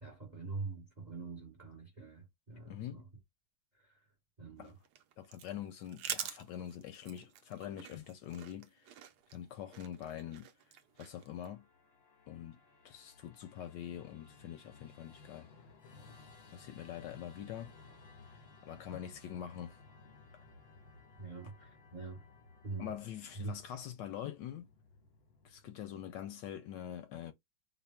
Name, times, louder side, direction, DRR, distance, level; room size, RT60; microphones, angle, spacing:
voice 1, 0.0-3.1 3.7-4.0 4.4-4.8 21.2-22.2 22.6-22.9 23.3-23.5, right 4 dB, 60° right, 0.4 m, -44 dB
voice 2, 2.7-3.0 4.6-4.7 5.2-9.0 9.3-11.7 12.3-12.6 12.8-15.5 16.5-17.7 18.7-19.8 20.3-20.4 22.8-24.7 25.4-27.3, left 10 dB, 75° left, 1.1 m, -44 dB
sound 1, 4.6-11.5, right 9 dB, 75° right, 0.9 m, -46 dB
Musical instrument, 10.9-26.2, left 3 dB, 50° left, 0.8 m, -59 dB
3.9 x 2.2 x 3.4 m
omnidirectional pair, 2.2 m